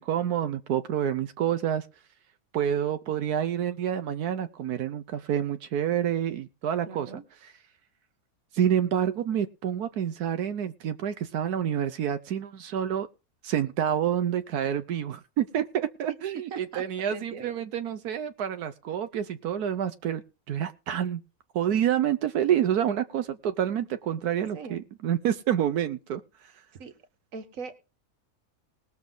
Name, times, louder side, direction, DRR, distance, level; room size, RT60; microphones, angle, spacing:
voice 1, 0.0-1.9 2.5-7.1 8.5-13.1 13.4-20.2 20.5-21.2 21.5-26.2, right 9 dB, 90° right, 9 dB, 1.4 m, -28 dB
voice 2, 6.8-7.2 16.1-16.8 17.1-17.5 24.5-24.8 26.7-26.9 27.3-27.9, right 5 dB, 60° right, 9 dB, 1.8 m, -40 dB
20.5 x 7.2 x 3.8 m, 0.30 s
omnidirectional pair, 1.6 m